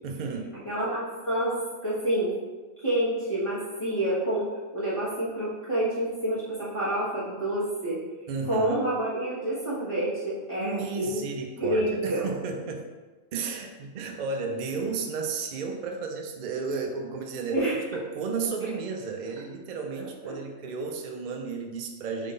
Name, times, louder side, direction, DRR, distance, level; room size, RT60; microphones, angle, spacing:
voice 1, 0.0-0.5 8.3-8.8 10.6-12.9 13.3-22.3, right 4 dB, 70° right, 3 dB, 0.4 m, -33 dB
voice 2, 0.6-1.6 1.8-2.3 2.8-4.5 4.7-8.0 8.5-11.2 11.6-12.3 17.5-17.7 20.2-20.3, right 1 dB, 25° left, -12 dB, 1.4 m, -28 dB
3.7 x 3.7 x 3.8 m, 1.3 s
omnidirectional pair, 1.4 m